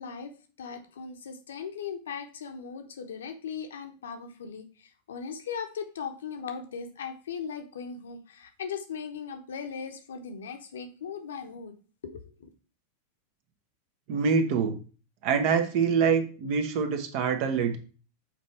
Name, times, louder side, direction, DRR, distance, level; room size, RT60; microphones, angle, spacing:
voice 1, 0.0-11.7 12.0-12.5, left 6 dB, 70° left, 6 dB, 1.0 m, -38 dB
voice 2, 14.1-14.8 15.2-17.8, right 6 dB, 50° right, 6 dB, 1.3 m, -25 dB
6.1 x 4.3 x 4.3 m, 0.37 s
figure-of-eight pair, 90°, 0 cm